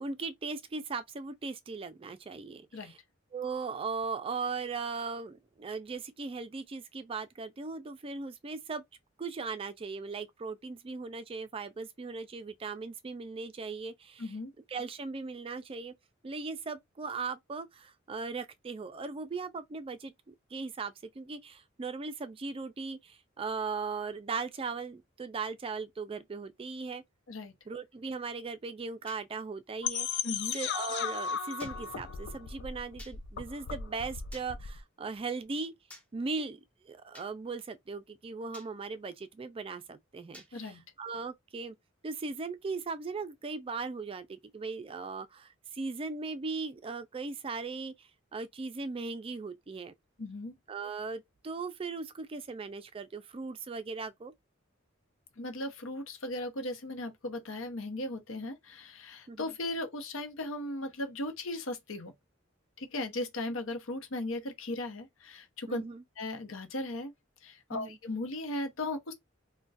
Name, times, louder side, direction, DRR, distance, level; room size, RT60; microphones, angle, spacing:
voice 1, 0.0-3.0 3.3-8.8 9.2-14.3 14.7-15.9 16.2-27.0 27.7-30.2 30.5-35.7 36.1-36.6 36.8-41.8 42.0-49.9 50.7-54.3 59.3-59.5 65.7-66.0 67.7-68.0, right 4 dB, 30° right, 0.4 m, -38 dB
voice 2, 14.2-14.5 27.3-27.5 30.2-30.6 40.5-40.8 50.2-50.6 55.4-62.1 62.8-65.8 66.2-67.1 67.4-69.1, left 2 dB, 75° left, 0.8 m, -37 dB
sound 1, 29.1-29.2 30.5-30.7 31.6-31.8 33.0-33.2 34.3-34.5 35.9-36.1 37.1-37.3 38.5-38.7 40.3-40.5, left 1 dB, 5° left, 0.7 m, -50 dB
sound 2, 29.8-34.8, left 7 dB, 55° left, 0.4 m, -36 dB
2.4 x 2.2 x 3.9 m
head